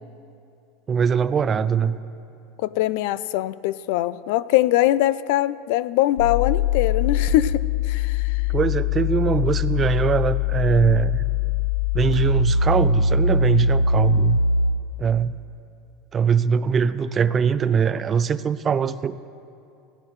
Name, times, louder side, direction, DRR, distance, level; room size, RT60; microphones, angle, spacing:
voice 1, 0.9-2.0 8.5-11.2 11.9-14.4 15.0-15.4 16.1-19.3, right 6 dB, 25° right, 15 dB, 0.3 m, -22 dB
voice 2, 2.6-7.6 7.9-8.4, left 15 dB, 65° left, 18 dB, 0.3 m, -22 dB
sound 1, 6.2-14.7, left 4 dB, 85° left, 1.0 m, -22 dB
17.0 x 14.5 x 3.1 m, 2.6 s
supercardioid pair, 150°, 0 cm